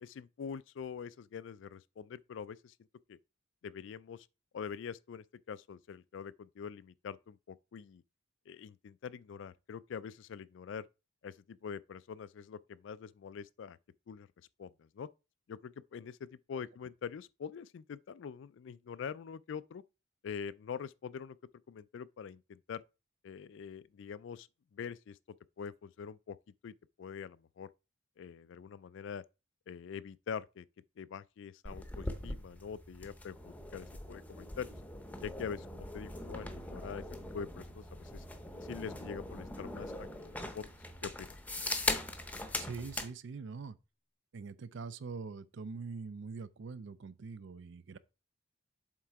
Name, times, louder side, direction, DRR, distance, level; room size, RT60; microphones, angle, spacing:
voice 1, 0.0-2.7 3.1-3.2 3.6-4.3 4.5-8.0 8.5-10.9 11.2-13.8 14.1-14.3 14.6-15.1 15.5-19.8 20.2-21.4 21.7-22.8 23.2-24.5 24.7-25.2 25.6-26.4 26.6-27.7 28.2-29.2 29.7-30.6 31.0-34.7 35.2-37.0 37.3-38.2 38.6-40.7 41.0-41.3, left 6 dB, 60° left, 0.3 m, -44 dB
sound 1, 31.6-43.1, left 1 dB, 10° left, 0.7 m, -41 dB
voice 2, 42.6-43.8 44.3-48.0, right 4 dB, 60° right, 0.5 m, -43 dB
7.5 x 3.7 x 4.6 m
head